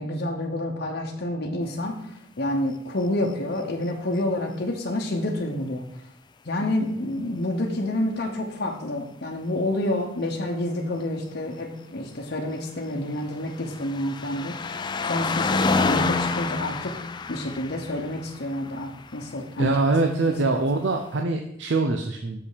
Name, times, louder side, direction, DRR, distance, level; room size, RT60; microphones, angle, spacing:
voice 1, 0.0-2.0 2.4-5.8 6.4-14.6 15.0-17.0 17.3-19.7, left 1 dB, 60° left, 0 dB, 1.0 m, -28 dB
sound 1, 12.7-19.4 20.4-20.5, left 4 dB, 25° left, 0.3 m, -28 dB
voice 2, 19.6-22.4, right 3 dB, 70° right, 4 dB, 0.6 m, -23 dB
6.9 x 5.4 x 5.0 m, 0.74 s
head